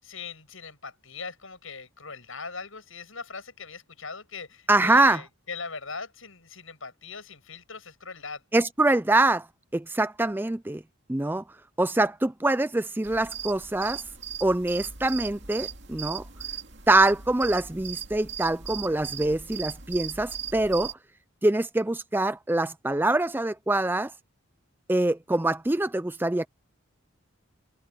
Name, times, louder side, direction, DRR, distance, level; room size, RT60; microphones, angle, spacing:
voice 1, 0.0-8.4, left 4 dB, 70° left, 8.0 m, -40 dB
voice 2, 4.7-5.2 8.5-9.5 9.7-10.8 11.1-11.4 11.8-14.0 14.4-16.2 16.9-20.9 21.4-24.1 24.9-26.5, right 2 dB, 10° right, 0.4 m, -24 dB
sound 1, 13.0-20.9, right 8 dB, 55° right, 2.6 m, -38 dB
head